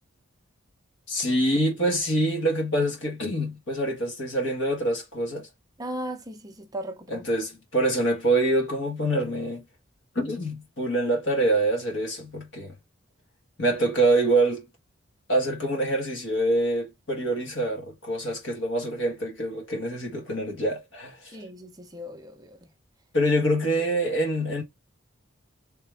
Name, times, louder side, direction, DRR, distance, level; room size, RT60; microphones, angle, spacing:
voice 1, 1.1-5.5 7.1-9.6 10.1-12.7 13.6-14.6 15.3-21.3 23.1-24.6, right 1 dB, 60° left, 1.5 m, -25 dB
voice 2, 5.8-7.3 21.3-22.6, equal, 20° right, 0.5 m, -37 dB
3.5 x 3.3 x 3.3 m
head